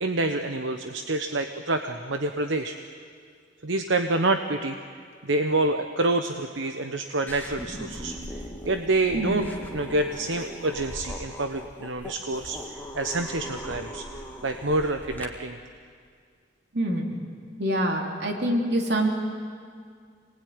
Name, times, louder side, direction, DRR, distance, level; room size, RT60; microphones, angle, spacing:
voice 1, 0.0-2.8 3.6-4.8 5.2-8.2 8.6-14.0 14.4-15.6, right 2 dB, 80° right, 7 dB, 1.1 m, -27 dB
sound 1, 7.3-15.3, equal, 10° left, 1.9 m, -39 dB
voice 2, 16.7-17.2 17.6-19.1, right 1 dB, 60° right, 1 dB, 3.4 m, -25 dB
26.5 x 20.0 x 9.6 m, 2.1 s
head